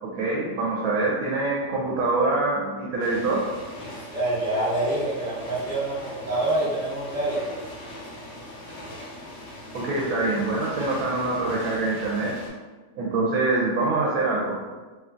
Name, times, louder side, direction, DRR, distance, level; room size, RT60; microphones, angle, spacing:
voice 1, 0.0-3.4 9.7-12.3 12.9-14.6, right 3 dB, 70° right, -4 dB, 0.9 m, -25 dB
sound 1, 3.0-12.5, left 1 dB, 85° left, 1.2 m, -40 dB
voice 2, 3.8-7.4, right 2 dB, 35° right, -8 dB, 1.0 m, -26 dB
2.9 x 2.3 x 2.5 m, 1.3 s
omnidirectional pair, 1.7 m